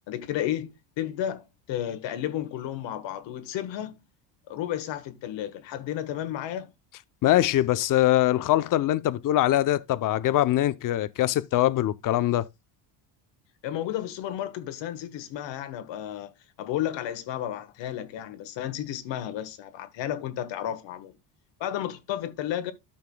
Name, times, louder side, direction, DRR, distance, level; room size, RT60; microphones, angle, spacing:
voice 1, 0.1-4.0 4.5-6.7 13.6-16.3 16.6-21.1 21.6-22.7, left 11 dB, 60° left, 1.5 m, -32 dB
voice 2, 7.2-12.5, left 14 dB, 40° left, 0.7 m, -23 dB
13.0 x 5.7 x 2.3 m
cardioid pair, 115°, 48 cm